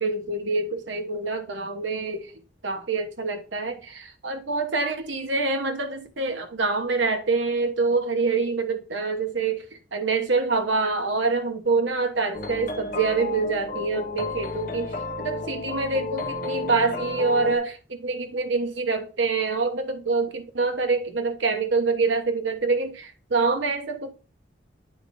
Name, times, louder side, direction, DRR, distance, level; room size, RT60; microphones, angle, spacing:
voice 1, 0.0-2.3 2.6-9.6 9.9-24.1, right 3 dB, 85° right, 1.1 m, -26 dB
sound 1, 12.3-17.6, left 2 dB, 45° left, 0.7 m, -32 dB
9.6 x 4.9 x 2.6 m
head